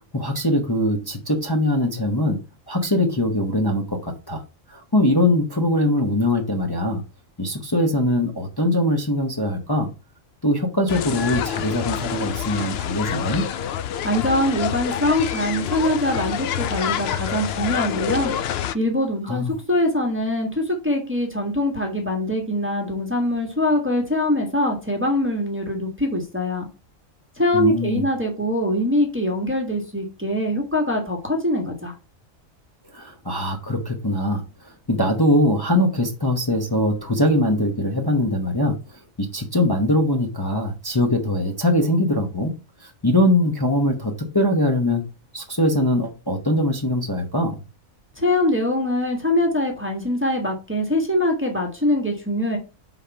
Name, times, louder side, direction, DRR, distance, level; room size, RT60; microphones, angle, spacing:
voice 1, 0.1-2.4 2.7-4.4 4.7-7.0 7.4-9.9 10.4-13.4 19.3-19.5 27.5-28.0 32.9-38.8 39.2-42.5 42.8-45.0 45.3-47.6, left 1 dB, 20° left, 0.9 m, -22 dB
sound 1, 10.9-18.7, left 9 dB, 65° left, 0.7 m, -27 dB
voice 2, 14.0-18.3 18.7-26.7 27.4-31.9 48.2-52.6, left 1 dB, 10° right, 1.4 m, -23 dB
5.1 x 4.1 x 5.6 m
omnidirectional pair, 1.3 m